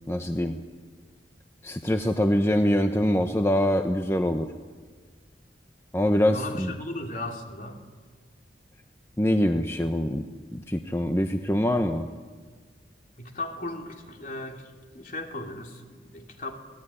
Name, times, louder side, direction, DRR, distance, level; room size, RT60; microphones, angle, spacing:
voice 1, 0.1-0.6 1.6-4.5 5.9-6.7 9.2-10.2 10.5-12.1, equal, 15° left, 6 dB, 0.9 m, -24 dB
voice 2, 6.3-7.8 13.2-16.5, left 2 dB, 50° left, 2 dB, 3.2 m, -36 dB
25.0 x 18.5 x 10.0 m, 1.5 s
head